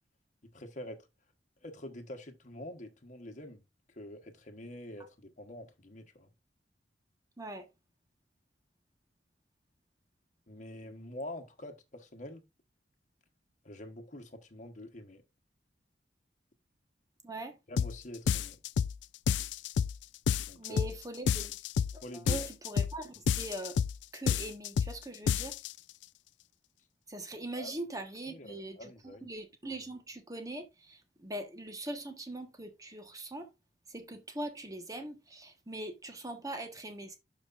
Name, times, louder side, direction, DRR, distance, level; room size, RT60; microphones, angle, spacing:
voice 1, 0.4-1.1 1.6-3.6 3.9-6.3 10.5-12.4 13.6-15.2 17.7-18.6 20.5-20.9 22.0-22.5 27.6-27.7 28.2-29.3, left 1 dB, 45° left, 1.3 m, -46 dB
voice 2, 7.4-7.7 17.2-17.6 20.6-21.6 21.9-23.7 24.1-25.6 27.1-33.5 33.9-37.2, right 1 dB, 20° right, 1.4 m, -42 dB
sound 1, 17.8-18.0 18.3-19.0 19.3-20.0 20.3-21.0 21.3-22.0 22.3-23.0 23.3-24.0 24.3-25.0 25.3-25.7, left 7 dB, 80° left, 0.4 m, -29 dB
12.5 x 5.2 x 2.5 m
head